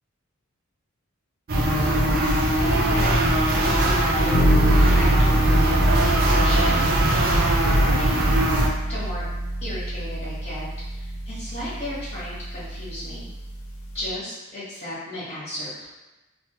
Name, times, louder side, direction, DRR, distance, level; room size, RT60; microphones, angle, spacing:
voice 1, 1.5-4.7 4.9-8.6 8.9-9.3 9.6-10.7 10.9-13.3 13.9-15.9, left 1 dB, 40° left, -10 dB, 1.3 m, -35 dB
sound 1, 1.5-8.7, right 1 dB, 45° right, 0.5 m, -21 dB
sound 2, 4.3-14.1, right 1 dB, 80° left, 0.6 m, -25 dB
3.0 x 2.4 x 3.3 m, 1.1 s
head